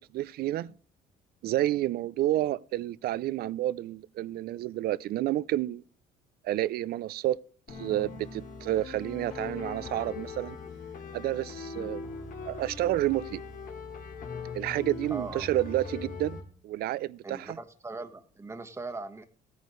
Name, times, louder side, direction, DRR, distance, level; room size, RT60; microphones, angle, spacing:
voice 1, 0.1-0.7 1.4-5.8 6.4-7.4 7.8-10.6 11.1-12.0 12.5-13.4 14.5-17.6, right 14 dB, 65° right, 0.5 m, -30 dB
sound 1, 7.7-16.4, left 5 dB, 55° left, 2.8 m, -41 dB
voice 2, 15.1-15.5 17.2-19.3, right 3 dB, 15° right, 1.3 m, -40 dB
16.0 x 9.4 x 3.2 m
cardioid pair, 110°, 17 cm